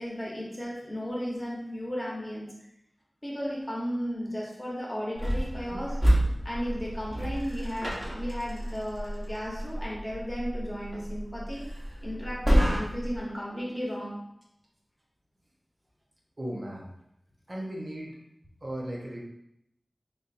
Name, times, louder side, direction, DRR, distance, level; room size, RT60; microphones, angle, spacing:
voice 1, 0.0-2.5 3.2-6.0 6.4-11.7 12.0-14.2, equal, 20° left, -4 dB, 1.1 m, -35 dB
sound 1, 5.2-13.2, equal, 20° right, 1.2 m, -29 dB
voice 2, 16.4-16.9 17.5-18.2 18.6-19.2, right 1 dB, 45° right, -3 dB, 0.9 m, -36 dB
5.3 x 2.8 x 2.6 m, 0.78 s
wide cardioid pair, 75°, 0 cm